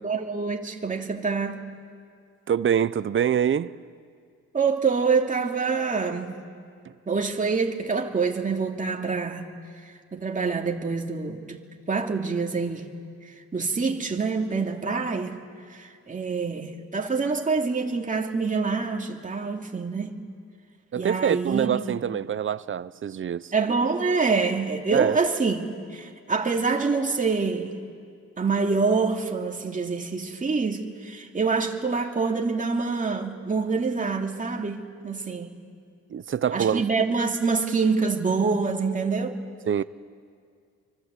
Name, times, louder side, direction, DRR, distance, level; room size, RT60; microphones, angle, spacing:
voice 1, 0.0-1.6 4.5-6.4 7.1-9.5 9.8-11.6 11.9-12.9 13.2-15.4 15.7-20.2 21.0-21.8 23.5-27.8 28.4-35.6 36.5-39.3, right 4 dB, 25° right, 2.7 m, -26 dB
voice 2, 2.5-3.7 6.9-7.0 20.9-23.5 24.9-25.2 36.1-36.8 39.7-39.8, right 8 dB, 40° right, 0.8 m, -25 dB
27.0 x 25.0 x 8.3 m
cardioid pair, 90°, 30 cm